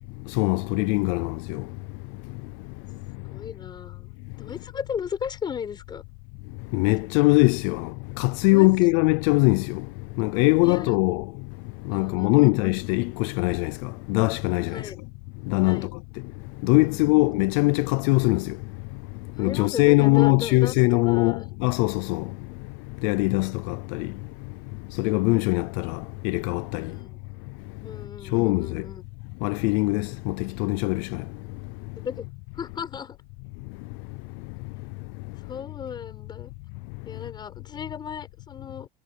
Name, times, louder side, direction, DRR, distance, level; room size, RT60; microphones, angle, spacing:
voice 1, 0.2-1.8 2.2-3.4 6.7-14.9 15.4-15.9 16.2-27.0 27.5-27.6 28.3-28.9 29.4-32.0 33.7-35.4 37.0-37.1, left 25 dB, 80° left, 0.6 m, -23 dB
voice 2, 3.3-6.0 8.5-8.7 10.6-10.9 11.9-12.6 14.7-15.0 15.6-15.9 16.8-17.4 19.3-21.5 26.8-27.3 27.8-29.0 32.0-32.3 32.5-33.2 35.5-36.5 37.0-38.9, left 7 dB, 25° left, 6.7 m, -36 dB
cardioid pair, 165°, 18 cm